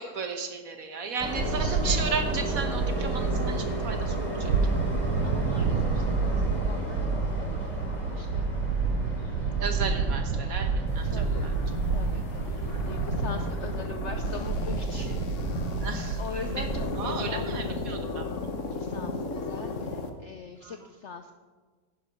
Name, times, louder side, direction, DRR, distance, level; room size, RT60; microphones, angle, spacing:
voice 1, 0.0-4.7 9.6-11.5 12.7-12.8 15.8-16.2 16.5-16.7 17.0-18.3 20.6-20.9, right 4 dB, 55° right, 6 dB, 1.5 m, -34 dB
Train, 1.2-13.8, equal, 25° left, 3.4 m, -35 dB
voice 2, 1.3-2.0 5.2-8.5 9.0-9.5 11.0-11.5 11.9-15.2 15.7-15.9 16.2-17.8 18.6-21.3, left 5 dB, 65° left, 7 dB, 0.7 m, -42 dB
sound 1, 1.4-16.9, right 5 dB, 75° right, 1.2 m, -29 dB
sound 2, 10.9-20.1, left 3 dB, 50° left, 1.3 m, -35 dB
10.5 x 10.5 x 5.2 m, 1.4 s
omnidirectional pair, 1.9 m